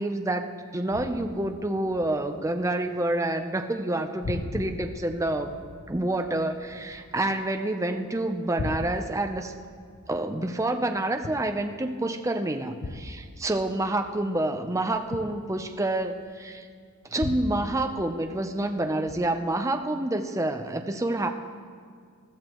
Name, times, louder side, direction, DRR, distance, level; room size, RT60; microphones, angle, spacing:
voice 1, 0.0-5.5 5.9-9.5 10.1-16.7 17.1-21.3, right 1 dB, 15° right, 5 dB, 0.5 m, -28 dB
sound 1, 0.9-3.2 3.4-3.9 4.2-7.9 8.3-12.0 12.8-16.4 17.2-18.7 19.1-19.6, left 2 dB, 50° left, 0.6 m, -40 dB
21.5 x 13.0 x 3.0 m, 2.1 s
head